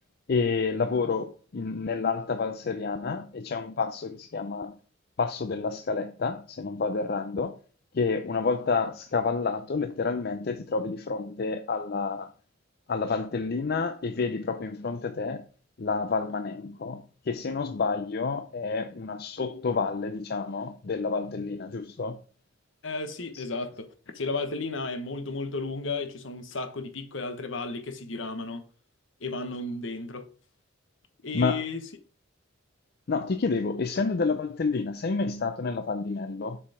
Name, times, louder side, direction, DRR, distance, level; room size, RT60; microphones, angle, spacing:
voice 1, 0.3-4.8 5.2-7.6 7.9-12.3 12.9-15.5 15.8-22.2 23.3-23.4 31.3-31.6 33.1-36.6, left 4 dB, 50° left, 0.5 m, -29 dB
voice 2, 22.8-28.6 29.2-30.3 31.2-31.8, left 3 dB, 70° left, 1.1 m, -33 dB
7.1 x 4.8 x 4.8 m
head